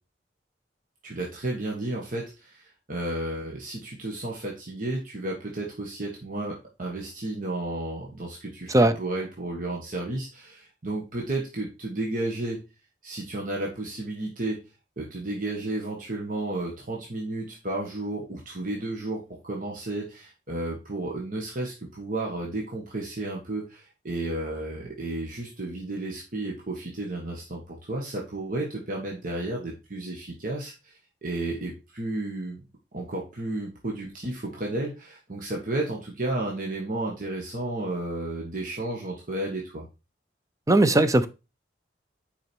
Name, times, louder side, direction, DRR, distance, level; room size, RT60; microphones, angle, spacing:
voice 1, 1.0-12.6 13.0-14.6 15.0-32.6 32.9-39.9, right 2 dB, 50° right, -2 dB, 1.5 m, -32 dB
voice 2, 40.7-41.3, right 2 dB, 20° right, 11 dB, 0.6 m, -18 dB
6.4 x 5.0 x 4.5 m, 0.29 s
head